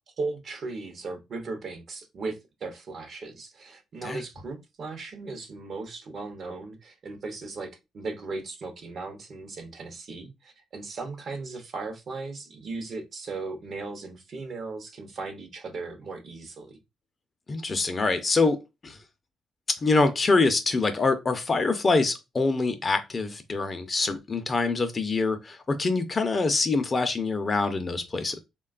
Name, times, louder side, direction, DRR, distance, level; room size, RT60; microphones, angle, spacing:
voice 1, 0.2-16.8, right 3 dB, 55° right, 0.7 m, -37 dB
voice 2, 17.5-18.6 18.8-19.0 19.7-28.4, left 3 dB, 35° left, 0.5 m, -25 dB
3.2 x 2.2 x 2.4 m
cardioid pair, 90°, 0 cm